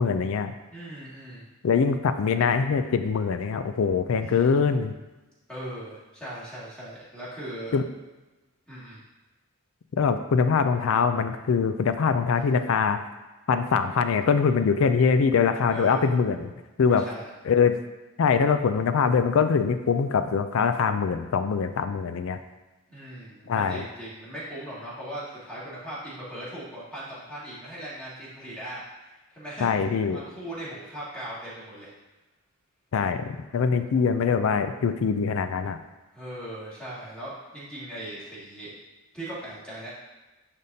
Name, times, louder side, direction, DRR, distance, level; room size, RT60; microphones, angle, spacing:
voice 1, 0.0-0.5 1.6-4.9 7.7-7.8 10.0-13.0 13.5-16.5 16.8-17.1 17.4-17.8 18.2-22.4 23.5-23.8 29.6-30.2 32.9-35.8, left 5 dB, 75° left, 9 dB, 0.4 m, -23 dB
voice 2, 0.7-1.5 4.2-4.5 5.5-7.7 8.7-9.0 15.7-16.1 16.9-17.3 22.9-29.7 30.1-31.9 36.1-38.7 39.1-39.9, right 1 dB, 5° left, -10 dB, 2.1 m, -39 dB
10.5 x 3.6 x 2.7 m, 1.1 s
head